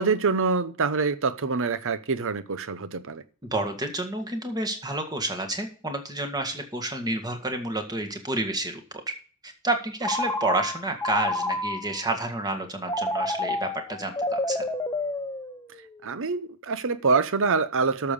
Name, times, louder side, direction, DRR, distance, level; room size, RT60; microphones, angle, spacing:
voice 1, 0.0-3.2 16.0-18.1, right 4 dB, 60° right, 0.8 m, -25 dB
voice 2, 3.4-8.8 9.4-14.6, right 2 dB, 20° right, 1.8 m, -30 dB
Telephone, 10.0-12.0 12.9-15.9, left 2 dB, 15° left, 0.9 m, -29 dB
12.0 x 6.9 x 5.2 m
head